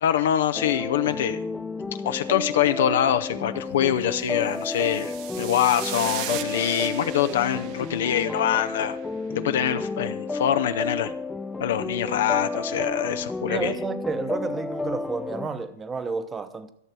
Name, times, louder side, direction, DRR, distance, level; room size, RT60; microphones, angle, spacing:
voice 1, 0.0-1.4 2.0-9.0 9.3-11.1 11.6-13.7, left 10 dB, 70° left, 0.6 m, -24 dB
sound 1, 0.5-15.5, left 3 dB, 10° left, 0.5 m, -32 dB
sound 2, 4.4-8.9, right 11 dB, 50° right, 1.0 m, -37 dB
voice 2, 13.5-16.7, right 4 dB, 15° right, 0.9 m, -31 dB
13.5 x 6.6 x 6.1 m
hypercardioid pair, 125°, 0 cm